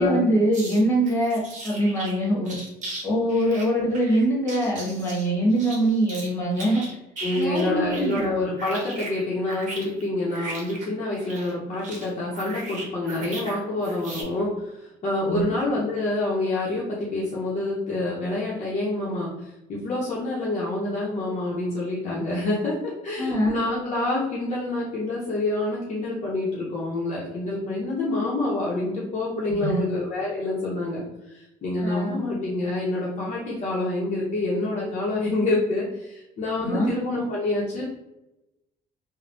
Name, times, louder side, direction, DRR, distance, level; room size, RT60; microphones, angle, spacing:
voice 1, 0.0-2.6 3.0-6.8 7.3-8.2 15.3-15.4 23.2-23.5 29.6-29.9 31.8-32.2 36.6-36.9, right 1 dB, 15° left, -4 dB, 1.4 m, -23 dB
sound 1, 0.5-2.1 2.5-3.0 3.3-6.3 6.5-8.3 8.6-13.6 13.8-14.2, right 2 dB, 45° right, 0.9 m, -38 dB
voice 2, 7.2-14.5 14.8-37.8, left 2 dB, 45° left, -5 dB, 0.7 m, -27 dB
3.2 x 2.1 x 2.6 m, 0.93 s
cardioid pair, 110°, 17 cm